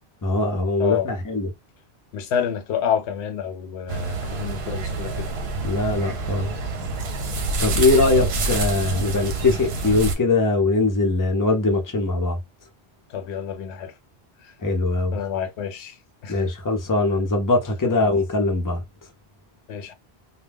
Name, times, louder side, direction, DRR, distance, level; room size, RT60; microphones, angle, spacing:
voice 1, 0.2-1.5 5.6-6.5 7.6-12.4 14.6-15.2 16.3-18.8, left 3 dB, 20° left, 0.6 m, -21 dB
voice 2, 0.8-1.1 2.1-5.3 6.8-6.9 8.1-8.3 13.1-13.9 15.1-16.0 16.2-16.4 17.8-18.1 19.7-19.9, left 8 dB, 90° left, 0.9 m, -28 dB
sound 1, 3.9-10.1, right 3 dB, 70° right, 0.9 m, -27 dB
2.3 x 2.2 x 3.4 m
omnidirectional pair, 1.1 m